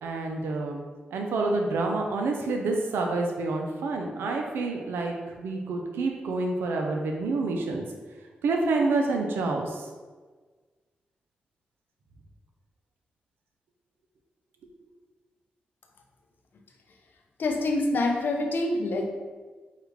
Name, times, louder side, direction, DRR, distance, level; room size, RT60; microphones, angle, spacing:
voice 1, 0.0-0.8 1.1-7.8 8.4-9.9, right 3 dB, 85° right, 2 dB, 0.5 m, -28 dB
voice 2, 17.4-19.0, left 2 dB, 65° left, 2 dB, 0.6 m, -26 dB
4.7 x 2.4 x 3.3 m, 1.4 s
cardioid pair, 55°, 4 cm